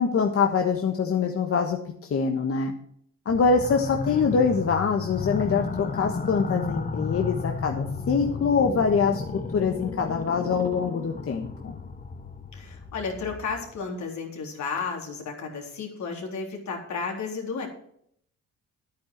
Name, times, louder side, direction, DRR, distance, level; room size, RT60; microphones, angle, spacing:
voice 1, 0.0-1.8 2.1-2.7 3.2-9.2 9.5-11.8, left 5 dB, 50° left, 3 dB, 1.4 m, -24 dB
sound 1, 3.3-13.8, left 4 dB, 30° left, 1.0 m, -33 dB
voice 2, 4.1-4.6 12.5-17.7, left 5 dB, 70° left, 1 dB, 3.7 m, -33 dB
11.0 x 9.3 x 4.6 m, 0.67 s
cardioid pair, 90°, 30 cm